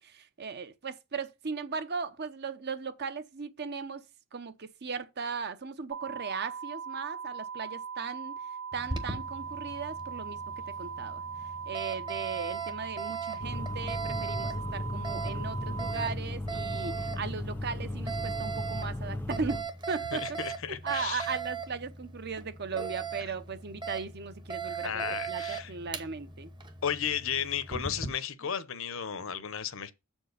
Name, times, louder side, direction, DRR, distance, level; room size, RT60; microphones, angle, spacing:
voice 1, 0.0-4.0 4.3-8.3 8.7-10.4 10.7-11.2 11.7-19.6 19.9-20.5 20.8-26.5, right 5 dB, 45° right, 0.7 m, -37 dB
sound 1, 5.9-15.9, right 6 dB, 65° right, 1.5 m, -40 dB
Alarm, 8.7-28.1, right 5 dB, 20° right, 0.9 m, -39 dB
sound 2, 13.4-19.6, left 1 dB, 10° left, 0.7 m, -36 dB
voice 2, 20.1-21.3 24.7-25.7 26.8-29.9, left 8 dB, 60° left, 0.8 m, -34 dB
7.3 x 4.5 x 6.6 m
head